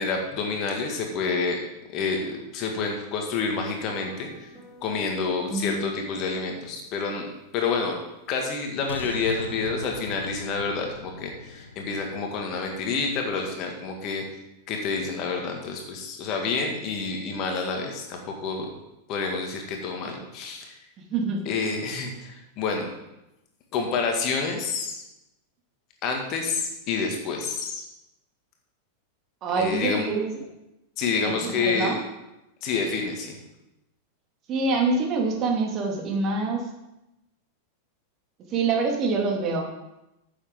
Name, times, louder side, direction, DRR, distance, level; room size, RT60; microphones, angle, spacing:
voice 1, 0.0-1.6 1.9-4.3 4.8-7.3 7.5-8.0 8.3-14.2 14.7-18.7 19.1-20.7 21.5-22.9 23.7-25.0 26.0-27.8 29.6-30.1 31.0-31.9 32.6-33.4, left 4 dB, 40° left, 2 dB, 2.1 m, -28 dB
sound 1, 3.9-7.2, equal, ahead, 3.9 m, -39 dB
sound 2, 8.9-14.0 14.5-14.6, left 3 dB, 75° left, 0.8 m, -40 dB
voice 2, 21.1-21.4 29.4-30.4 31.2-32.0 34.5-36.7 38.5-39.7, right 4 dB, 35° right, 1 dB, 2.4 m, -25 dB
14.0 x 7.4 x 3.8 m, 0.91 s
figure-of-eight pair, 90°, 0 cm